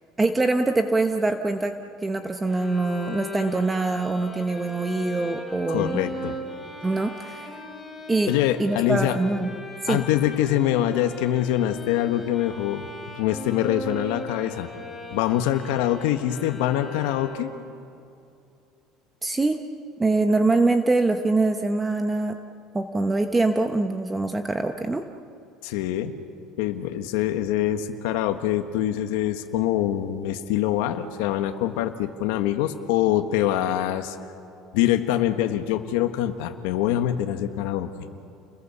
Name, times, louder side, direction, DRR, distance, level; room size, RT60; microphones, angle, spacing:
voice 1, 0.2-1.7 2.0-6.0 6.8-7.5 8.1-9.5 9.8-10.0 19.2-19.6 20.0-22.4 22.7-25.0, right 2 dB, 15° right, 7 dB, 1.0 m, -24 dB
Bowed string instrument, 2.5-17.8, left 1 dB, 5° left, 3.8 m, -39 dB
voice 2, 5.7-6.4 8.3-9.2 9.9-12.9 13.1-14.7 15.1-17.5 25.6-26.1 26.6-34.2 34.7-37.9, left 12 dB, 90° left, 7 dB, 1.4 m, -24 dB
30.0 x 22.0 x 7.1 m, 2.6 s
cardioid pair, 140°, 0 cm